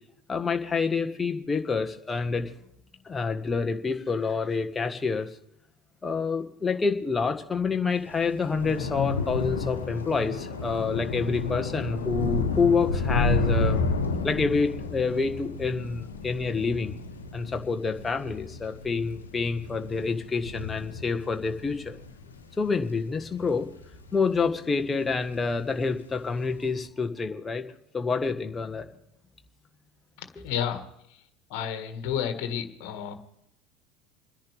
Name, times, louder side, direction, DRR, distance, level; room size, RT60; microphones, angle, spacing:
voice 1, 0.3-2.5 3.0-5.3 6.0-13.8 14.2-16.9 17.3-22.0 22.6-23.7 24.1-27.7 27.9-28.9, left 4 dB, 20° left, 5 dB, 1.5 m, -27 dB
Thunder / Rain, 8.0-24.6 24.9-25.4 25.6-25.8, left 3 dB, 85° left, 1.2 m, -31 dB
voice 2, 30.2-31.2 31.5-33.1, left 9 dB, 60° left, 7 dB, 1.7 m, -32 dB
29.0 x 10.5 x 3.5 m, 0.76 s
figure-of-eight pair, 75°, 0 cm